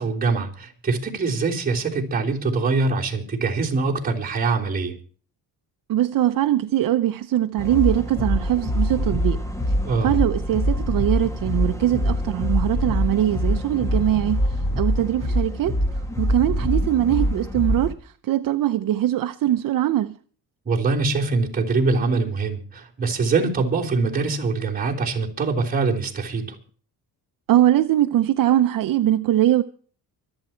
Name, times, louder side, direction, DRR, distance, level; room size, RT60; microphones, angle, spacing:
voice 1, 0.0-5.0 9.8-10.2 20.7-26.6, right 4 dB, 20° right, 3.4 m, -23 dB
voice 2, 5.9-9.4 10.0-14.4 14.8-15.8 16.2-20.2 27.5-29.6, right 12 dB, 55° right, 0.7 m, -21 dB
sound 1, 7.6-17.9, equal, 10° left, 1.3 m, -24 dB
25.0 x 8.8 x 4.4 m
cardioid pair, 150°, 39 cm